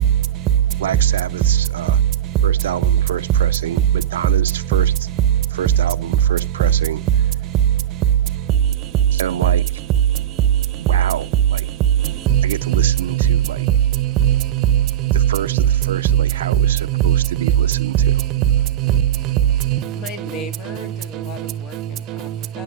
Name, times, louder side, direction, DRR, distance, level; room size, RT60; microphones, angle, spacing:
voice 1, 0.8-2.0 2.4-4.9 5.5-7.0 9.1-9.6 10.9-11.7 12.4-13.6 15.3-18.0, right 10 dB, 80° right, 0.6 m, -27 dB
voice 2, 12.3-17.5 17.8-18.9 19.2-19.4 19.6-19.9 20.3-20.4 20.7-20.8 21.4-21.5, right 11 dB, 40° right, 0.9 m, -18 dB
voice 3, 19.9-22.6, left 3 dB, 40° left, 1.8 m, -37 dB
11.5 x 6.7 x 9.3 m
hypercardioid pair, 125°, 0 cm